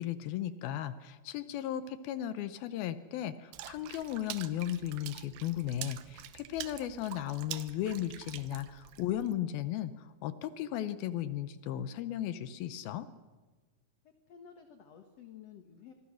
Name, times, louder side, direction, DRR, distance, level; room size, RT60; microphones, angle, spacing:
voice 1, 0.0-13.1, left 11 dB, 80° left, 13 dB, 2.6 m, -36 dB
Water / Splash splatter, 3.5-9.3, right 13 dB, 85° right, 2.9 m, -46 dB
voice 2, 14.0-15.9, left 8 dB, 55° left, 6 dB, 2.1 m, -53 dB
26.0 x 22.5 x 6.3 m, 1.3 s
omnidirectional pair, 4.4 m